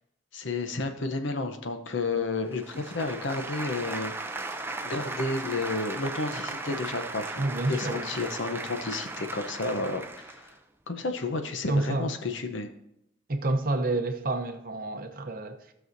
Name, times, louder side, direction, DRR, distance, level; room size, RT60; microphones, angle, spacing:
voice 1, 0.3-10.5 10.9-12.7, left 3 dB, 70° left, 0.8 m, -32 dB
sound 1, 2.5-10.5, right 3 dB, 10° right, 0.5 m, -37 dB
voice 2, 7.4-8.2 11.7-12.1 13.3-15.7, right 2 dB, 45° right, 0.8 m, -29 dB
15.5 x 6.2 x 2.7 m
head